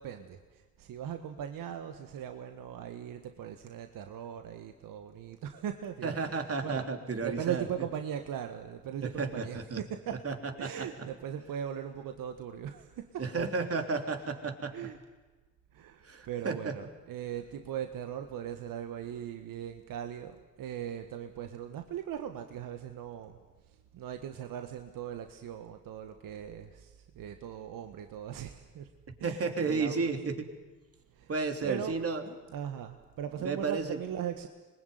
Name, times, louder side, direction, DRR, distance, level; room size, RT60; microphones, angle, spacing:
voice 1, 0.0-6.2 6.6-6.9 7.2-10.2 10.6-13.2 14.7-15.0 15.7-23.4 23.7-28.9 29.2-30.1 31.1-31.3 31.6-31.9 32.5-34.5, right 9 dB, 65° right, 7 dB, 1.6 m, -39 dB
voice 2, 6.0-7.6 9.0-9.8 10.2-10.4 10.6-10.9 13.2-14.7 16.0-16.7 29.2-30.5 31.3-32.2 33.4-34.0, right 4 dB, 40° right, 5 dB, 3.5 m, -32 dB
25.5 x 20.5 x 9.5 m, 1.3 s
hypercardioid pair, 55°, 37 cm